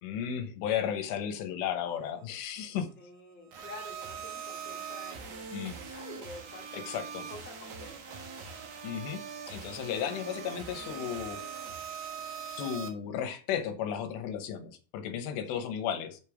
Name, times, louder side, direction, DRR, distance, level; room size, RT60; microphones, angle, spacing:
voice 1, 0.0-2.9 5.5-5.8 6.7-7.2 8.8-9.2 9.5-11.4 12.2-16.2, left 9 dB, 80° left, 7 dB, 3.2 m, -34 dB
voice 2, 2.9-7.0 7.3-8.3 15.5-15.7, left 2 dB, 10° left, -2 dB, 0.4 m, -49 dB
sound 1, 3.5-12.9, right 6 dB, 65° right, 1.5 m, -42 dB
7.4 x 5.4 x 4.9 m, 0.38 s
omnidirectional pair, 5.0 m